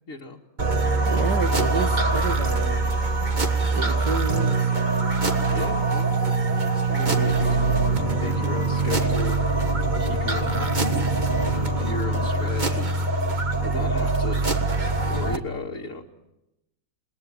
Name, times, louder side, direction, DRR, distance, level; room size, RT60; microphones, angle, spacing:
voice 1, 0.1-0.4 5.5-7.9 8.2-9.4 9.6-11.1 11.4-14.7 15.1-16.0, left 2 dB, 50° left, -1 dB, 2.4 m, -36 dB
sound 1, 0.6-15.4, right 3 dB, 25° right, 1.7 m, -23 dB
voice 2, 1.1-2.9 3.7-4.7, right 5 dB, 70° right, 9 dB, 2.3 m, -30 dB
sound 2, 7.0-12.3, left 4 dB, 25° left, 0.9 m, -35 dB
29.0 x 21.0 x 8.9 m, 0.91 s
omnidirectional pair, 1.8 m